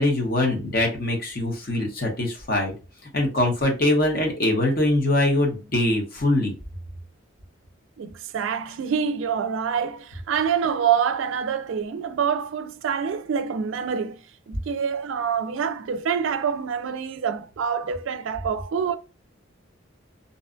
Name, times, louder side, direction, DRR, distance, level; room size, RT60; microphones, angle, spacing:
voice 1, 0.0-2.7 3.1-6.5, left 1 dB, 45° left, 0.9 m, -23 dB
voice 2, 8.0-14.2 14.5-18.9, right 7 dB, 75° right, 0.3 m, -26 dB
2.7 x 2.3 x 2.4 m
head